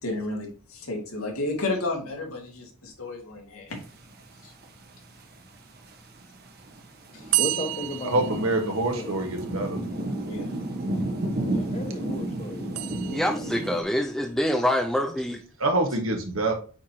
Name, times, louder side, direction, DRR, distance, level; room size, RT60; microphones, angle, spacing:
voice 1, 0.0-3.8 4.4-4.5 7.1-7.4 10.2-10.5, left 2 dB, 85° left, 1 dB, 2.2 m, -32 dB
sound 1, 3.7-13.8, right 1 dB, 45° right, 1.2 m, -33 dB
voice 2, 7.2-9.2 11.5-13.8, left 1 dB, 30° left, 5 dB, 1.2 m, -36 dB
sound 2, 7.3-9.3 12.7-13.8, right 17 dB, 90° right, 0.4 m, -30 dB
voice 3, 8.0-9.8 15.6-16.5, right 2 dB, 70° right, 3 dB, 1.6 m, -25 dB
voice 4, 13.1-15.4, equal, ahead, 3 dB, 0.5 m, -25 dB
8.5 x 4.5 x 2.9 m, 0.38 s
head